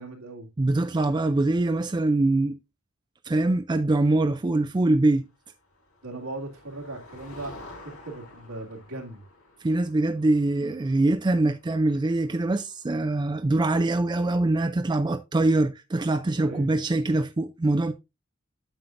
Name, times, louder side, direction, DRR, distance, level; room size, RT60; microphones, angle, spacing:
voice 1, 0.0-0.5 6.0-7.5 7.8-9.2 16.4-16.7, right 2 dB, 85° right, 2.4 m, -38 dB
voice 2, 0.6-2.6 3.2-5.2 9.6-17.9, right 2 dB, 20° right, 0.4 m, -23 dB
Motor vehicle (road), 5.4-13.2, left 2 dB, 80° left, 4.0 m, -50 dB
8.9 x 7.2 x 2.5 m
head